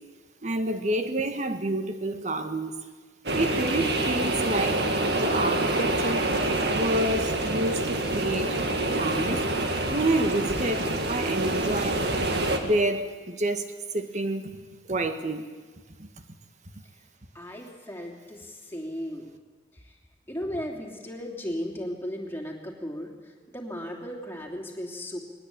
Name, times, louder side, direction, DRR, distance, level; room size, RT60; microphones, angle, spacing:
voice 1, 0.4-2.8 3.3-4.9 5.1-6.3 6.7-8.6 9.0-9.5 9.9-12.1 12.6-13.7 13.9-14.5 14.9-15.5 16.0-16.1, right 1 dB, 40° right, 1.5 m, -28 dB
sound 1, 3.3-12.6, right 2 dB, 60° right, 2.2 m, -26 dB
voice 2, 17.3-19.3 19.7-19.9 20.3-25.2, equal, 15° left, 3.1 m, -36 dB
20.5 x 19.5 x 8.7 m
head